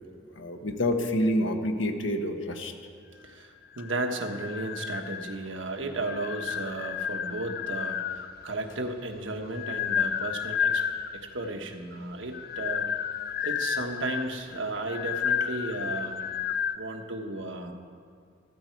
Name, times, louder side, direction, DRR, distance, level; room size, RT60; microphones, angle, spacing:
voice 1, 0.4-2.7, left 1 dB, 75° left, 5 dB, 1.2 m, -27 dB
voice 2, 3.2-10.8 11.1-12.9 13.4-16.2 16.8-17.7, right 2 dB, 75° right, 4 dB, 1.3 m, -34 dB
sound 1, 3.8-5.5 6.0-8.4 9.2-11.3 12.2-16.7, left 8 dB, 50° left, 0.4 m, -31 dB
15.0 x 13.0 x 4.6 m, 2.2 s
head